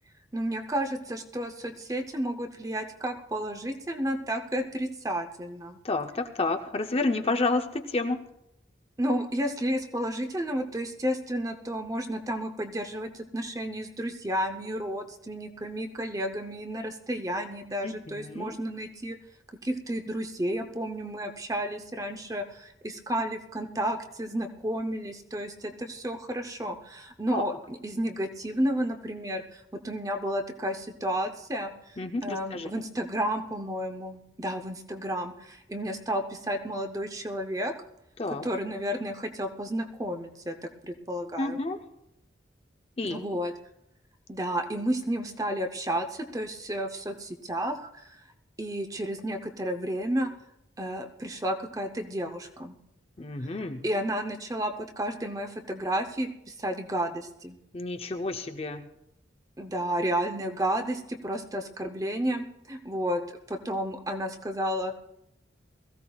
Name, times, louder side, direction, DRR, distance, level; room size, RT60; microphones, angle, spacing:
voice 1, 0.3-5.8 9.0-19.2 19.6-31.7 32.2-37.7 38.4-40.5 40.8-41.6 43.1-43.5 44.3-48.2 48.6-50.3 50.8-52.8 53.8-57.6 59.6-63.2 63.5-64.9, right 1 dB, 15° right, 7 dB, 0.7 m, -32 dB
voice 2, 5.8-8.2 17.8-18.6 27.3-27.5 32.0-32.7 38.2-38.5 41.4-41.8 43.0-43.4 53.2-53.8 57.7-58.9, left 3 dB, 30° left, 6 dB, 0.6 m, -30 dB
21.0 x 15.0 x 2.3 m, 0.84 s
head